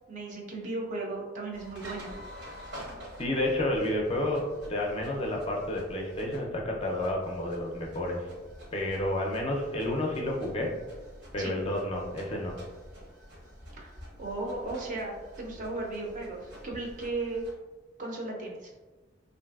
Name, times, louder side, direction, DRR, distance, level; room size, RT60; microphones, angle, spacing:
voice 1, 0.1-2.1 11.4-11.5 13.7-17.4 18.0-18.7, right 2 dB, 40° right, -1 dB, 0.5 m, -36 dB
sound 1, 1.5-17.5, equal, 65° right, 0.8 m, -48 dB
voice 2, 3.2-8.2 8.7-10.7 11.3-12.6, left 1 dB, 30° left, 0 dB, 0.4 m, -30 dB
3.1 x 2.5 x 2.3 m, 1.2 s
head